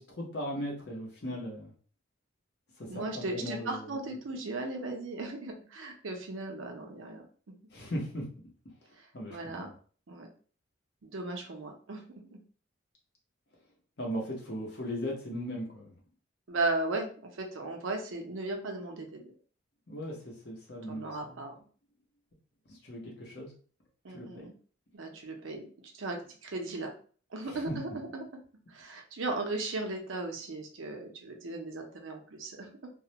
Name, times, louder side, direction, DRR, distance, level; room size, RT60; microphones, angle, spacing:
voice 1, 0.0-1.7 2.8-4.0 7.7-8.3 9.1-9.7 14.0-16.0 19.9-21.4 22.7-23.5 24.1-24.5 27.4-27.8, equal, 55° left, -2 dB, 0.8 m, -38 dB
voice 2, 2.9-7.3 9.3-9.7 10.1-10.3 11.0-12.4 16.5-19.3 20.9-21.5 24.0-24.5 24.9-25.6 25.9-26.9 27.3-28.2 28.7-32.9, right 2 dB, 75° right, 2 dB, 0.6 m, -36 dB
2.3 x 2.1 x 2.8 m, 0.42 s
head